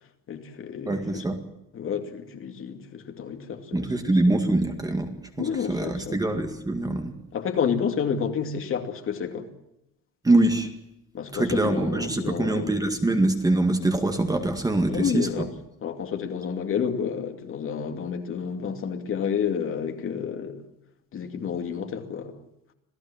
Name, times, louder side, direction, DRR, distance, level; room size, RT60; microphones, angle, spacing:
voice 1, 0.3-1.3 1.7-4.2 5.4-6.2 7.3-9.5 11.1-12.7 14.9-15.5 15.8-20.6 21.1-22.4, left 7 dB, 40° left, 2.5 m, -30 dB
voice 2, 0.9-1.4 3.7-5.1 5.4-7.1 10.2-10.7 11.3-15.5, right 2 dB, 10° right, 2.0 m, -24 dB
27.0 x 17.5 x 7.4 m
cardioid pair, 175°, 34 cm